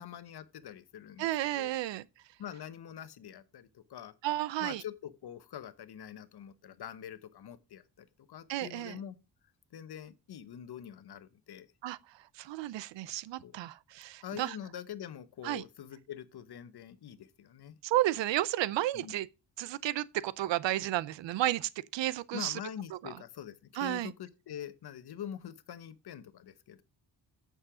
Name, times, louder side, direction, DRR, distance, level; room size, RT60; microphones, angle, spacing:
voice 1, 0.0-1.7 2.4-4.1 4.6-9.2 9.7-11.7 13.4-13.6 14.2-17.8 18.9-19.1 22.3-26.8, left 10 dB, 60° left, 1.0 m, -45 dB
voice 2, 1.2-2.1 4.2-4.8 8.5-9.0 11.8-12.0 12.4-14.6 15.4-15.6 17.8-19.3 19.6-22.6 23.7-24.1, right 15 dB, 85° right, 0.6 m, -32 dB
8.8 x 6.6 x 4.9 m
cardioid pair, 115°, 43 cm